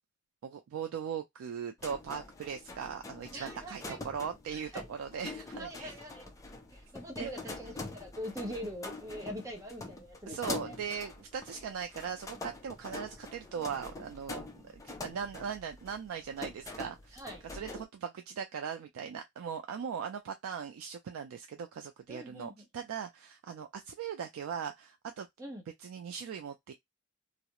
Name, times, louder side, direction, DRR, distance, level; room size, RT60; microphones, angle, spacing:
voice 1, 0.4-5.9 7.2-7.3 10.3-17.2 17.5-25.3 25.8-26.7, right 7 dB, 85° right, 0.3 m, -39 dB
sound 1, 1.8-17.9, left 3 dB, 15° left, 0.4 m, -45 dB
voice 2, 3.3-4.0 4.5-4.9 5.6-6.3 6.7-10.8 17.1-17.4 22.1-22.6 25.4-25.6, equal, 15° right, 0.7 m, -43 dB
2.3 x 2.0 x 2.8 m
head